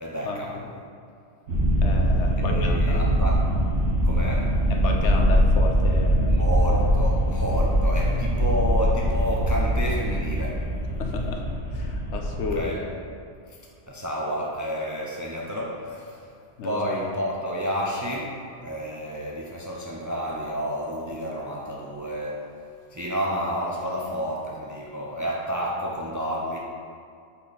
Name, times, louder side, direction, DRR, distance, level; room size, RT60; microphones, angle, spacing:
voice 1, 0.0-0.5 2.4-3.5 4.0-4.5 6.3-10.6 12.5-12.8 13.5-13.6 13.9-16.3 16.6-22.5 22.9-26.6, equal, 25° right, -3 dB, 0.4 m, -30 dB
sound 1, 1.5-12.6, equal, 75° right, 1.4 m, -22 dB
voice 2, 1.8-3.1 4.7-6.5 11.0-12.8 16.6-17.0 23.9-24.0, left 4 dB, 85° left, 2 dB, 1.0 m, -32 dB
5.6 x 4.1 x 4.1 m, 2.4 s
omnidirectional pair, 1.1 m